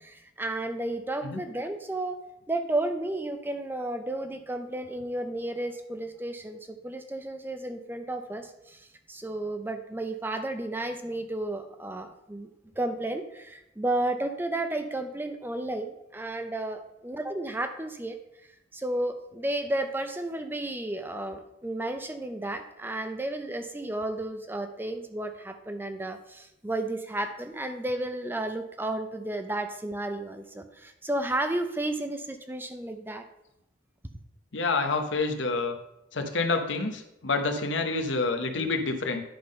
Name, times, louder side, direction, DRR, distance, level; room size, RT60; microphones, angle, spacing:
voice 1, 0.0-2.2 2.5-12.5 12.8-18.2 18.7-33.2, right 1 dB, 10° right, 7 dB, 0.5 m, -32 dB
voice 2, 34.5-35.7 36.1-39.2, left 3 dB, 85° left, 5 dB, 1.0 m, -28 dB
10.5 x 3.8 x 5.2 m, 0.86 s
head